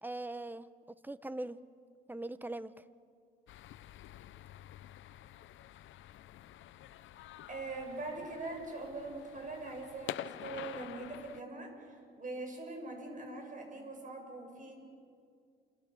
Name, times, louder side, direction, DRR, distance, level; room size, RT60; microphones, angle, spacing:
voice 1, 0.0-0.7 1.0-1.6 2.1-2.8, right 2 dB, 10° right, 14 dB, 1.0 m, -40 dB
sound 1, 3.5-11.4, left 12 dB, 75° left, 0.8 m, -48 dB
voice 2, 7.5-14.7, right 2 dB, 40° right, 3 dB, 7.2 m, -42 dB
28.5 x 26.0 x 7.2 m, 2.4 s
cardioid pair, 90°, 20 cm